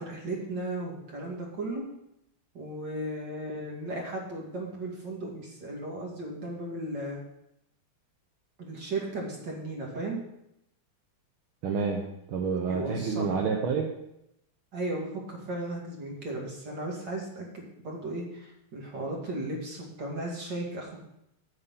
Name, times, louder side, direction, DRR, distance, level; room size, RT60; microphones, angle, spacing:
voice 1, 0.0-1.9 2.5-7.2 8.6-10.2 12.7-13.4 14.7-21.0, right 2 dB, 55° right, -1 dB, 3.0 m, -35 dB
voice 2, 11.6-13.9, right 5 dB, 75° right, 0 dB, 1.9 m, -29 dB
8.7 x 8.5 x 5.5 m, 0.82 s
omnidirectional pair, 2.3 m